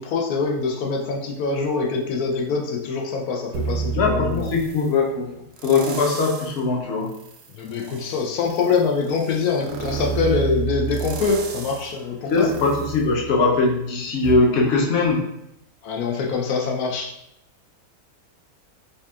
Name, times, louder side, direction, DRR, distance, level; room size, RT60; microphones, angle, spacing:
voice 1, 0.0-4.5 7.5-12.5 15.8-17.1, left 4 dB, 85° left, 1 dB, 1.1 m, -24 dB
sound 1, 3.5-4.9 5.6-6.6 7.1-13.8 14.2-14.3, right 6 dB, 65° right, 0.7 m, -31 dB
voice 2, 4.0-5.3 5.6-7.1 12.3-15.3, left 3 dB, 55° left, -1 dB, 0.8 m, -20 dB
5.2 x 2.4 x 2.3 m, 0.83 s
omnidirectional pair, 1.6 m